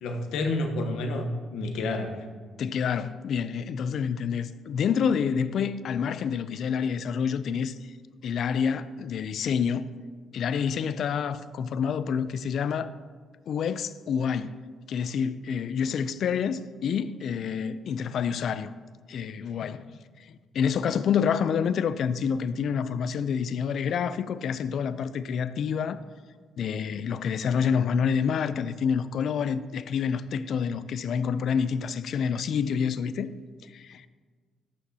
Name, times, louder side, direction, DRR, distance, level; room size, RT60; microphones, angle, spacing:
voice 1, 0.0-2.2, left 2 dB, 85° left, 1.0 m, -29 dB
voice 2, 2.6-7.8 8.2-9.9 10.3-12.9 13.5-14.6 14.9-18.7 19.1-20.0 20.3-26.0 26.6-33.4 33.7-34.0, left 7 dB, 65° left, 0.4 m, -28 dB
12.0 x 8.2 x 2.8 m
cardioid pair, 90°, 0 cm